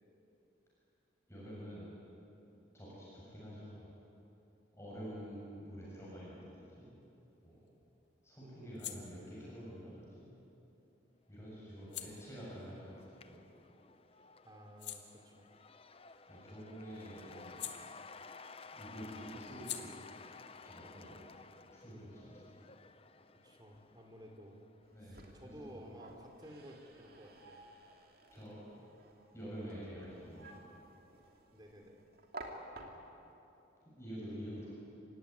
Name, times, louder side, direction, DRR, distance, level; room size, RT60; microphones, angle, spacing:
voice 1, 1.3-1.9 2.5-3.9 4.8-6.9 7.4-7.6 8.2-10.3 11.3-13.4 16.3-17.6 18.7-19.9 20.6-22.5 24.9-25.8 28.3-28.6 29.3-30.6 34.0-34.7, equal, 15° left, -8 dB, 7.8 m, -48 dB
sound 1, 7.0-13.9 14.3-18.5 18.8-22.2, left 11 dB, 65° left, 1.8 m, -52 dB
voice 2, 11.4-11.9 14.4-15.5 23.3-24.6 25.0-27.6 31.5-32.0, equal, 20° right, 2 dB, 3.0 m, -54 dB
Cheering / Applause / Crowd, 11.5-24.9, left 4 dB, 30° left, 0.7 m, -55 dB
sound 2, 24.8-33.3, right 2 dB, 50° right, 2.7 m, -54 dB
28.0 x 17.0 x 9.9 m, 2.9 s
head